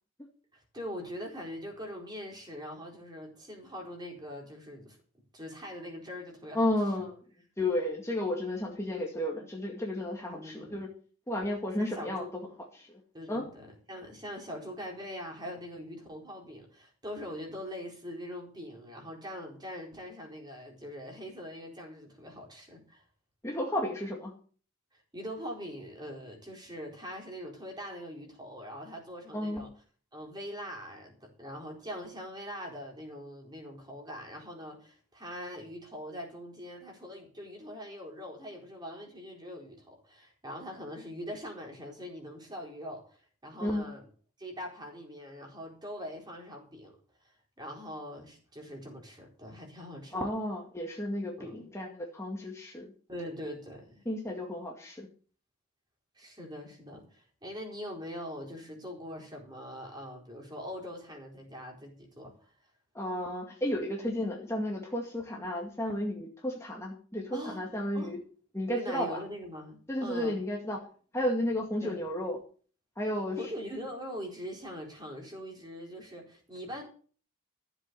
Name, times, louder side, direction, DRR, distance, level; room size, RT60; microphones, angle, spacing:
voice 1, 0.5-5.0 5.3-6.7 10.3-10.8 11.4-11.5 11.8-12.3 13.1-23.0 24.9-29.7 30.1-44.1 44.4-46.9 47.2-47.3 47.6-50.3 51.4-51.5 53.1-54.0 56.2-62.5 67.3-67.6 67.9-68.1 68.7-70.4 71.8-72.0 73.4-76.8, equal, 20° right, 1 dB, 4.2 m, -42 dB
voice 2, 6.5-7.1 7.6-10.9 11.3-12.3 12.7-13.0 13.3-13.5 23.4-24.3 29.3-29.6 43.6-43.8 50.1-52.9 54.1-55.1 62.9-68.2 68.5-69.2 69.9-70.8 71.1-72.4 73.0-73.4, left 1 dB, 15° left, -1 dB, 2.1 m, -32 dB
14.5 x 7.9 x 6.9 m, 0.42 s
head